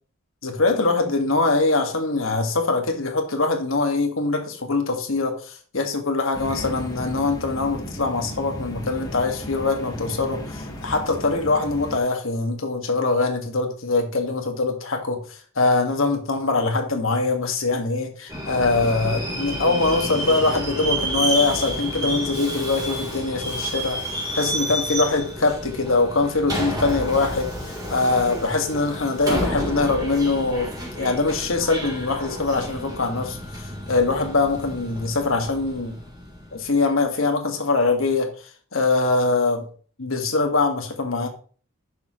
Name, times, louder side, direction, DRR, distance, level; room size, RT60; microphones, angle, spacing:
voice 1, 0.4-24.0 24.3-30.7 31.0-36.0 36.5-39.6 40.0-41.3, left 3 dB, 70° left, 4 dB, 1.8 m, -23 dB
sound 1, 6.3-12.0, equal, 20° left, 1.6 m, -35 dB
Subway metro underground, 18.3-36.7, equal, 15° right, 3.4 m, -30 dB
11.0 x 7.0 x 3.1 m, 0.42 s
head